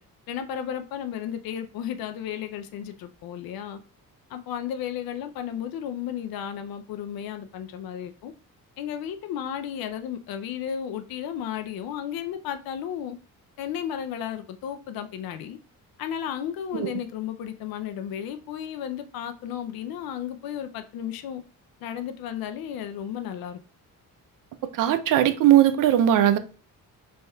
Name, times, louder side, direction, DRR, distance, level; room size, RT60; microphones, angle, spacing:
voice 1, 0.3-3.8 4.3-8.3 8.8-13.2 13.6-15.6 16.0-21.4 21.8-23.6, left 9 dB, 80° left, 0.5 m, -33 dB
voice 2, 24.7-26.4, right 11 dB, 65° right, 0.5 m, -19 dB
4.2 x 3.4 x 2.2 m
cardioid pair, 140°, 35 cm